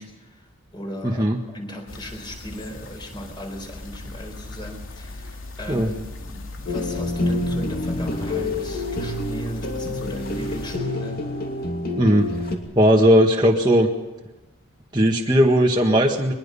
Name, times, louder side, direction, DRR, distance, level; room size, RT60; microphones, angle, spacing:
voice 1, 0.0-11.2, equal, 20° left, 3 dB, 4.5 m, -37 dB
voice 2, 1.0-1.4 5.7-5.9 12.0-12.3 12.8-13.9 14.9-16.3, equal, 20° right, -1 dB, 1.7 m, -17 dB
sound 1, 1.9-10.8, left 2 dB, 85° left, 3.0 m, -38 dB
sound 2, 6.7-12.6, left 2 dB, 45° left, 2.8 m, -27 dB
22.5 x 21.0 x 5.6 m, 1.1 s
head